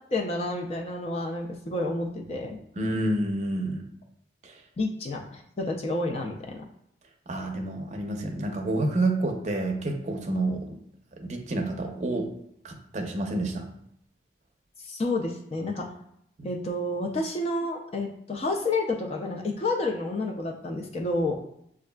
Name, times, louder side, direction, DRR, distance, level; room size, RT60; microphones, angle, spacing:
voice 1, 0.1-2.6 4.8-6.6 14.8-15.9 16.4-21.4, left 2 dB, 35° left, 1 dB, 0.3 m, -30 dB
voice 2, 2.8-3.9 4.4-4.6 7.3-10.8 11.2-12.3 12.6-13.7, right 2 dB, 40° right, 3 dB, 0.5 m, -29 dB
6.2 x 2.4 x 2.2 m, 0.74 s
head